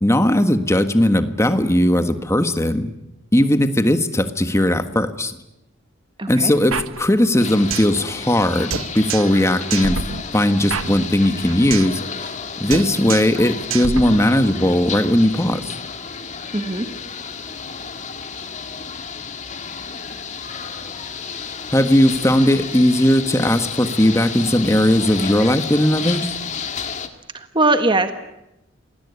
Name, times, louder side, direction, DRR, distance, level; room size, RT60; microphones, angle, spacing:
voice 1, 0.0-2.9 3.3-5.3 6.3-10.0 10.3-12.0 12.6-15.7 21.7-26.3, left 1 dB, 15° left, 9 dB, 1.6 m, -18 dB
voice 2, 6.2-6.5 16.5-16.9 27.3-28.1, right 2 dB, 25° right, 8 dB, 1.6 m, -20 dB
sound 1, 6.7-8.0 8.2-8.3 8.7-9.4 9.7-12.0 12.2-12.4 12.7-13.4 13.7-14.7, right 5 dB, 85° right, 1.1 m, -28 dB
sound 2, 7.4-27.1, left 6 dB, 35° left, 2.1 m, -32 dB
27.5 x 20.0 x 9.8 m, 0.92 s
head